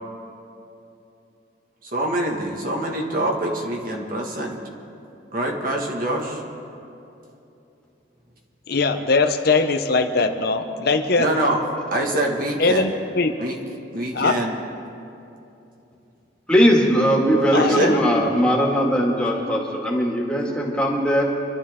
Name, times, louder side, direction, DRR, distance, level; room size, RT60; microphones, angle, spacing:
voice 1, 1.8-4.6 5.3-6.4 11.2-11.6 11.9-12.9 13.4-13.6 13.9-14.5 17.5-17.9, right 1 dB, 50° right, 1 dB, 1.8 m, -25 dB
voice 2, 8.7-11.3 12.1-12.2 12.6-13.4 14.1-14.4 17.5-18.0, left 3 dB, 55° left, 6 dB, 0.8 m, -21 dB
voice 3, 16.5-21.2, equal, 5° left, -3 dB, 2.1 m, -19 dB
25.5 x 12.5 x 3.7 m, 2.8 s
head